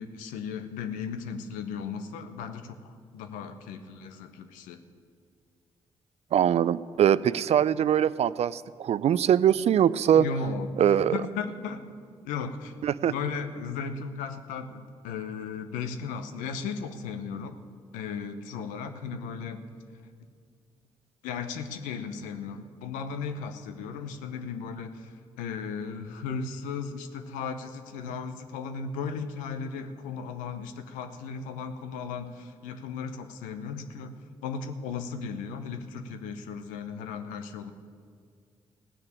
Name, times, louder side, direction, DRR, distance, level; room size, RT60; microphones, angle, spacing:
voice 1, 0.0-2.8 3.1-4.8 10.1-11.9 12.2-12.7 13.0-17.6 17.9-19.6 21.2-37.7, left 5 dB, 75° left, 8 dB, 0.8 m, -36 dB
voice 2, 6.3-10.3 10.8-11.2 12.8-13.1, right 9 dB, 50° right, 18 dB, 0.4 m, -22 dB
16.5 x 6.6 x 8.6 m, 2.2 s
hypercardioid pair, 40°, 13 cm